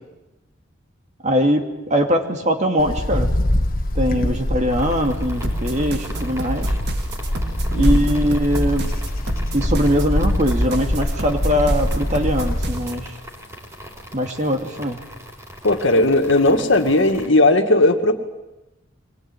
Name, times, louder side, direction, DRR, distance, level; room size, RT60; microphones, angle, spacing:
voice 1, 1.2-3.7 3.9-6.7 7.8-8.9 9.5-13.1 14.1-15.0, equal, 35° right, 4 dB, 2.5 m, -21 dB
Wind, 2.8-12.8, left 1 dB, 45° left, 1.6 m, -23 dB
sound 1, 4.7-17.3, equal, 15° right, 4.3 m, -39 dB
sound 2, 5.4-13.1, right 1 dB, 55° right, 2.0 m, -29 dB
voice 2, 7.7-8.0 15.6-18.1, left 2 dB, 70° left, 5 dB, 2.2 m, -17 dB
24.5 x 21.0 x 9.2 m, 1.0 s
head